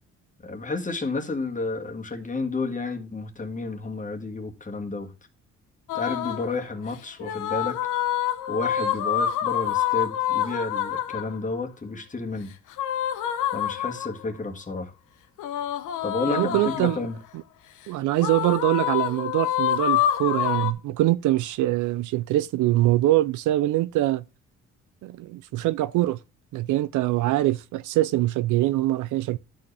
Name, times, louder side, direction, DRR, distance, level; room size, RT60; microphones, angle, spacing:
voice 1, 0.4-5.1 5.9-7.8 8.5-12.5 13.5-14.9 16.0-17.2, left 3 dB, 25° left, 1.9 m, -31 dB
sound 1, 5.9-6.5 7.2-11.4 12.7-14.3 15.4-17.1 18.2-20.7, left 11 dB, 85° left, 1.0 m, -27 dB
voice 2, 16.3-17.0 17.9-24.2 25.0-26.2 26.5-29.4, right 15 dB, 80° right, 0.5 m, -23 dB
12.0 x 4.8 x 3.3 m
cardioid pair, 90°, 30 cm